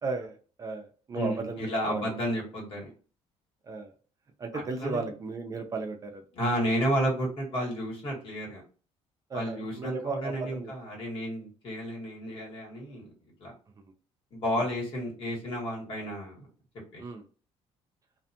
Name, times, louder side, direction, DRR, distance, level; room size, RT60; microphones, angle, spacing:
voice 1, 0.0-2.1 3.6-3.9 4.4-6.2 9.3-10.7 14.6-14.7 17.0-17.2, right 3 dB, 30° right, 4 dB, 0.5 m, -35 dB
voice 2, 1.1-2.9 4.5-5.1 6.3-8.6 9.3-13.1 13.4-13.5 14.3-16.5 16.9-17.0, equal, 55° left, -2 dB, 1.5 m, -32 dB
2.5 x 2.4 x 2.7 m, 0.39 s
cardioid pair, 125°, 11 cm